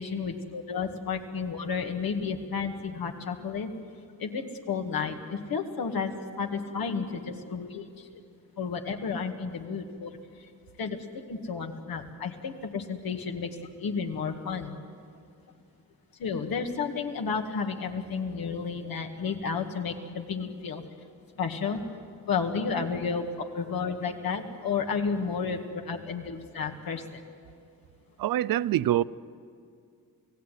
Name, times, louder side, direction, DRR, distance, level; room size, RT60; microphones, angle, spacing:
voice 1, 0.0-3.7 4.2-8.1 8.6-10.1 10.8-11.0 11.3-14.8 16.2-20.8 21.4-21.8 22.3-27.2, left 5 dB, 80° left, 2.2 m, -32 dB
voice 2, 28.2-29.0, right 13 dB, 75° right, 0.6 m, -25 dB
28.5 x 17.0 x 9.4 m
supercardioid pair, 55°, 35 cm